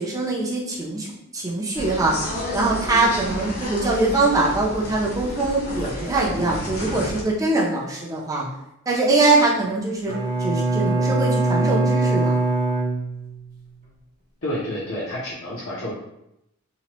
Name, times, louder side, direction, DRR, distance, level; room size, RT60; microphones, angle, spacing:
voice 1, 0.0-2.2 2.5-8.5 8.9-12.4, right 2 dB, 15° right, -3 dB, 0.4 m, -23 dB
sound 1, 1.7-7.2, left 1 dB, 80° left, 1.3 m, -31 dB
Bowed string instrument, 10.1-13.6, right 2 dB, 40° right, 0.8 m, -22 dB
voice 2, 14.4-15.9, equal, 55° left, -9 dB, 0.6 m, -29 dB
2.9 x 2.1 x 2.9 m, 0.83 s
head